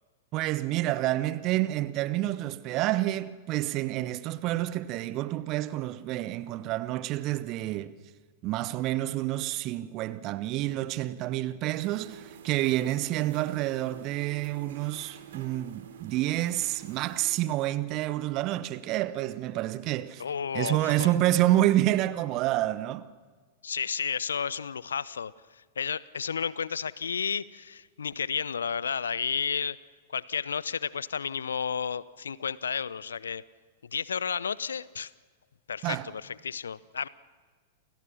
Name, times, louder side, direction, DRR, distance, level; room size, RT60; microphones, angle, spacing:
voice 1, 0.3-7.9 8.4-20.2 20.5-23.1 35.8-36.1, right 15 dB, 40° right, 1.1 m, -28 dB
sound 1, 11.7-17.4, right 9 dB, 60° right, 3.0 m, -48 dB
voice 2, 20.2-21.1 23.6-25.3 25.8-29.8 30.1-33.4 33.9-35.1 35.7-37.1, left 6 dB, 70° left, 0.7 m, -32 dB
29.0 x 29.0 x 5.9 m
figure-of-eight pair, 95°, 0 cm